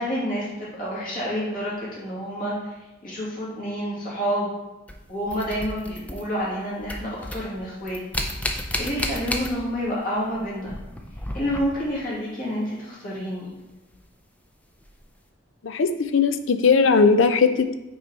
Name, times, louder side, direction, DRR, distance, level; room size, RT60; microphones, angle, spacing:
voice 1, 0.0-2.7 3.0-4.5 5.1-10.7 11.3-13.5, equal, 45° left, -7 dB, 2.4 m, -29 dB
sound 1, 4.9-6.6 6.8-10.0 10.2-12.0 13.9-14.0 14.9-15.0, left 1 dB, 5° left, 0.4 m, -32 dB
voice 2, 15.6-17.7, left 5 dB, 75° left, 10 dB, 0.5 m, -19 dB
6.2 x 4.7 x 4.0 m, 1.0 s
head